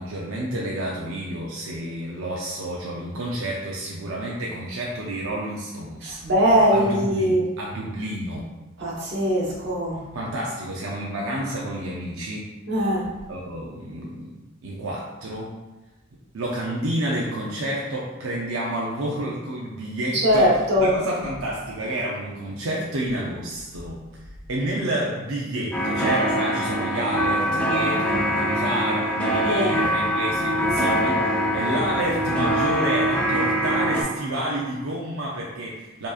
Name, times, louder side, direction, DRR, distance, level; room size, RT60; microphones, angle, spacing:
voice 1, 0.0-6.2 6.7-8.4 10.1-12.5 13.3-14.3 14.6-15.5 16.3-20.5 20.8-24.0 24.5-36.1, right 1 dB, 85° right, -3 dB, 0.5 m, -29 dB
voice 2, 6.0-7.4 8.8-10.0 12.7-13.1 20.2-20.9 29.5-29.7, equal, 55° right, -5 dB, 1.1 m, -21 dB
sound 1, 25.7-34.0, equal, 5° left, 0.5 m, -23 dB
4.5 x 2.9 x 2.4 m, 1.1 s
head